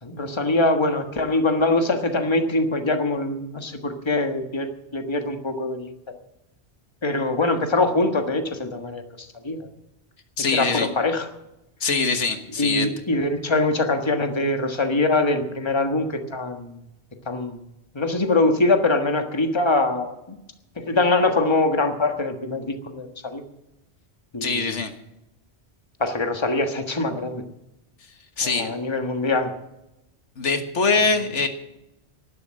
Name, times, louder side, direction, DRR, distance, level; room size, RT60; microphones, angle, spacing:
voice 1, 0.0-6.2 7.0-9.6 10.5-11.3 12.6-16.8 17.3-17.6 17.9-20.1 20.9-23.4 24.3-24.8 26.0-27.4 28.4-29.5, left 2 dB, 25° left, 6 dB, 1.5 m, -23 dB
voice 2, 10.4-10.9 11.8-12.9 24.4-24.9 28.4-28.7 30.4-31.5, left 4 dB, 85° left, 7 dB, 1.8 m, -23 dB
12.0 x 11.5 x 7.6 m, 0.89 s
omnidirectional pair, 1.2 m